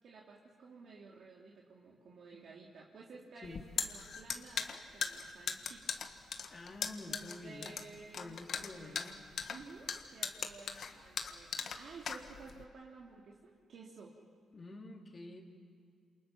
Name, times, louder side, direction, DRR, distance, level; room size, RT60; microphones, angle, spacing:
voice 1, 0.0-6.0 7.1-9.2 9.5-14.2, right 4 dB, 60° right, -3 dB, 2.9 m, -54 dB
sound 1, 3.4-12.6, left 6 dB, 55° left, 1.6 m, -39 dB
voice 2, 6.5-7.7 8.2-9.1 14.5-15.4, left 2 dB, 30° left, 1 dB, 3.4 m, -48 dB
28.0 x 28.0 x 6.1 m, 2.3 s
cardioid pair, 110°, 0 cm